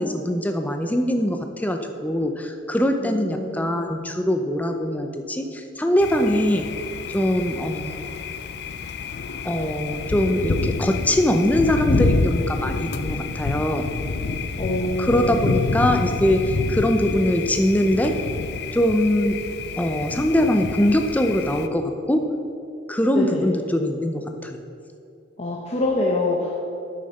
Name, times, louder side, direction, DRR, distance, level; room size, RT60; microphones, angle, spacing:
voice 1, 0.0-6.7 7.1-8.1 9.4-13.9 15.0-18.2 18.7-19.4 19.8-22.2 22.9-24.6, left 1 dB, 10° left, 5 dB, 0.5 m, -22 dB
voice 2, 3.0-3.7 14.6-15.4 23.1-23.4 25.4-26.6, left 2 dB, 35° left, -2 dB, 0.8 m, -25 dB
Thunder, 6.0-21.7, left 3 dB, 60° left, 0.5 m, -28 dB
9.2 x 6.5 x 5.4 m, 2.5 s
head